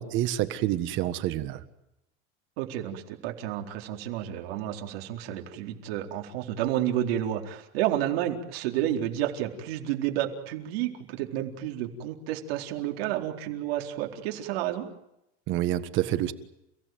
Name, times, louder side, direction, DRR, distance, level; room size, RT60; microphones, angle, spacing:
voice 1, 0.0-1.6 15.5-16.3, right 13 dB, 40° right, 11 dB, 1.6 m, -27 dB
voice 2, 2.6-14.9, right 12 dB, 85° right, 3 dB, 4.2 m, -30 dB
30.0 x 17.0 x 9.4 m, 0.86 s
cardioid pair, 180°, 29 cm